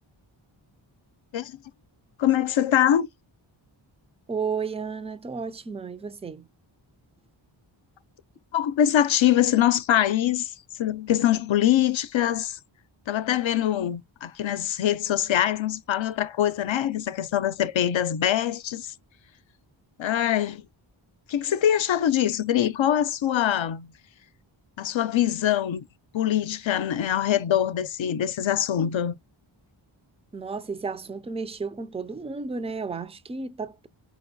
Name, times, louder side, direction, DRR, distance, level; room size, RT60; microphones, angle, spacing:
voice 1, 2.2-3.1 8.5-10.5 10.8-12.6 13.1-18.9 20.0-20.6 21.3-23.9 24.8-25.9 26.1-29.1, left 11 dB, 75° left, 0.6 m, -23 dB
voice 2, 4.3-6.5 30.3-33.9, right 5 dB, 15° right, 0.4 m, -33 dB
5.2 x 3.0 x 2.6 m
wide cardioid pair, 115°, 47 cm